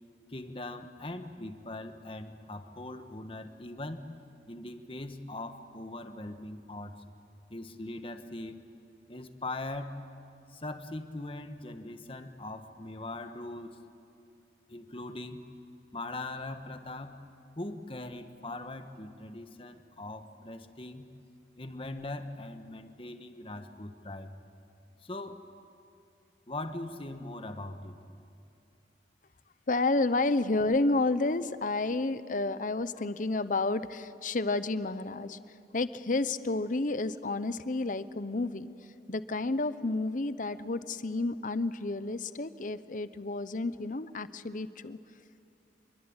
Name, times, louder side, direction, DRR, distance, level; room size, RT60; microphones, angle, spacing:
voice 1, 0.3-4.1 4.5-7.0 7.5-8.7 9.1-10.0 10.5-13.8 14.7-15.4 15.9-17.2 17.6-21.1 21.6-24.3 25.0-25.5 26.5-28.0, left 2 dB, 30° left, 7 dB, 1.4 m, -41 dB
voice 2, 29.7-35.4 35.7-38.7 39.1-45.0, left 2 dB, 45° left, 14 dB, 0.8 m, -30 dB
26.5 x 23.0 x 8.9 m, 2.8 s
head